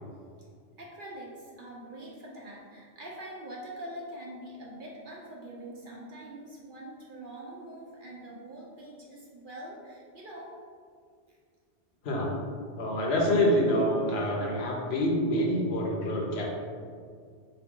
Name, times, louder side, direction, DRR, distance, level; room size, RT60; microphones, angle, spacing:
voice 1, 0.8-10.6, right 1 dB, 55° right, -3 dB, 0.7 m, -44 dB
voice 2, 12.0-12.3 12.8-16.5, equal, 65° left, -1 dB, 0.9 m, -26 dB
3.9 x 2.9 x 3.6 m, 2.1 s
omnidirectional pair, 1.2 m